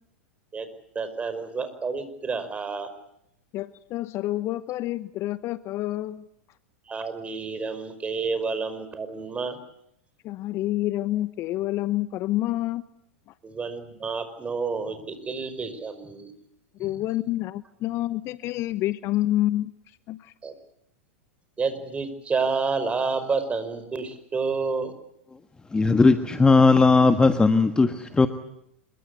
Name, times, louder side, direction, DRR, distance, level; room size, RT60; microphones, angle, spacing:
voice 1, 1.0-2.9 6.9-9.6 13.4-16.3 16.8-17.0 20.4-20.5 21.6-24.9, right 4 dB, 20° right, 10 dB, 5.2 m, -29 dB
voice 2, 3.5-6.2 10.2-12.8 16.8-19.7 20.1-20.2, left 15 dB, 40° left, 15 dB, 1.0 m, -28 dB
voice 3, 25.7-28.3, left 3 dB, 10° left, 9 dB, 1.5 m, -18 dB
27.0 x 23.0 x 8.3 m, 0.77 s
hypercardioid pair, 95°, 7 cm